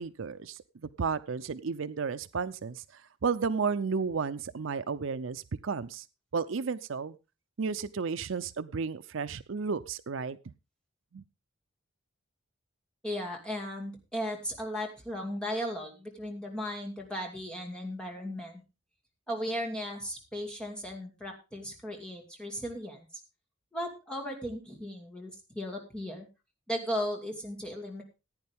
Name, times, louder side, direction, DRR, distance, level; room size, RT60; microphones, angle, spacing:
voice 1, 0.0-2.8 3.2-6.0 6.3-7.2 7.6-10.4 11.1-11.2, right 5 dB, 70° right, 13 dB, 0.5 m, -33 dB
voice 2, 13.0-18.6 19.3-23.2 23.7-26.3 26.7-28.0, equal, 5° left, 0 dB, 2.5 m, -36 dB
15.5 x 9.5 x 3.5 m, 0.28 s
head